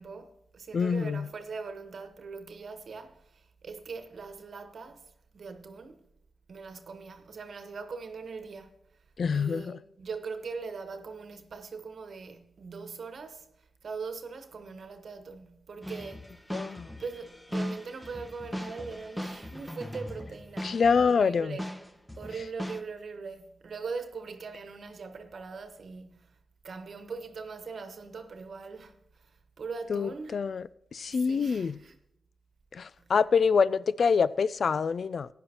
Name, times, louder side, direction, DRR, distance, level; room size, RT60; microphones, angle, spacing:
voice 1, 0.0-6.0 6.5-8.7 9.3-13.5 13.8-16.4 17.0-21.6 22.2-26.3 26.6-30.4 31.1-32.0, right 4 dB, 65° right, 1.2 m, -41 dB
voice 2, 0.7-1.3 9.2-9.8 16.5-16.9 20.6-21.6 29.9-30.6 30.9-31.8 32.7-35.3, left 5 dB, 65° left, 0.3 m, -26 dB
sound 1, 15.8-21.3 21.6-22.8, equal, 10° left, 1.1 m, -39 dB
15.5 x 10.0 x 2.9 m
supercardioid pair, 40°, 0 cm